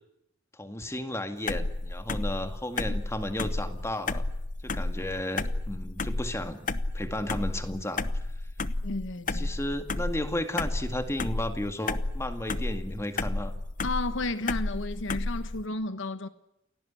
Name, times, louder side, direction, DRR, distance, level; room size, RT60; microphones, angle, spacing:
voice 1, 0.5-4.2 4.6-8.1 9.3-13.5, left 1 dB, 15° left, 2.0 m, -34 dB
sound 1, 1.5-15.6, left 2 dB, 40° left, 1.0 m, -32 dB
voice 2, 8.8-9.5 13.8-16.3, left 2 dB, 70° left, 1.3 m, -32 dB
29.0 x 17.5 x 10.0 m
head